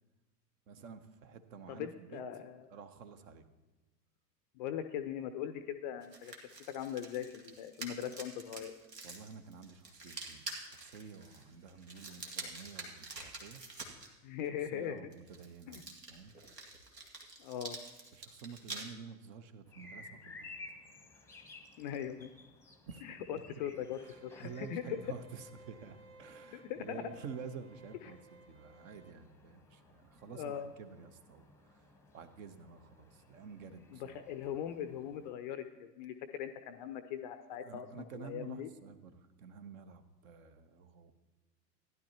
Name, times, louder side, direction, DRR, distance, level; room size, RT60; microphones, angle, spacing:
voice 1, 0.7-2.2 2.7-3.5 9.0-13.6 14.7-15.8 16.1-16.3 18.1-20.5 22.9-23.0 23.3-23.4 24.1-28.2 28.5-31.5 32.1-34.2 37.6-41.1, right 6 dB, 50° right, 12 dB, 0.9 m, -50 dB
voice 2, 1.7-2.7 4.6-8.7 14.2-15.1 15.7-15.8 17.4-17.8 21.8-22.3 23.0-25.0 26.5-27.1 28.0-28.1 30.3-30.7 33.9-38.7, left 9 dB, 30° left, 9 dB, 0.4 m, -40 dB
sound 1, 6.0-14.1 15.1-18.8, right 3 dB, 75° right, 1.8 m, -47 dB
sound 2, 19.7-35.3, left 2 dB, 5° left, 0.8 m, -57 dB
sound 3, 24.0-29.1, right 2 dB, 20° right, 1.4 m, -59 dB
15.5 x 10.5 x 2.9 m, 1.1 s
figure-of-eight pair, 85°, 49 cm